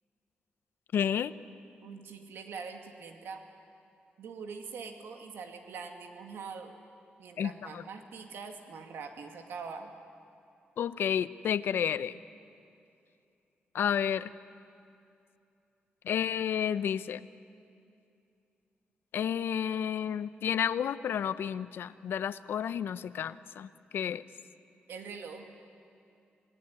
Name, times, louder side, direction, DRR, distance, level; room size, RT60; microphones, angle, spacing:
voice 1, 0.9-1.3 7.4-7.8 10.8-12.2 13.7-14.3 16.0-17.3 19.1-24.2, left 8 dB, 80° left, 14 dB, 0.7 m, -31 dB
voice 2, 1.8-3.4 4.2-6.7 7.2-9.9 24.9-25.5, right 5 dB, 90° right, 4 dB, 2.4 m, -43 dB
27.5 x 18.5 x 9.8 m, 2.6 s
wide cardioid pair, 120°, 4 cm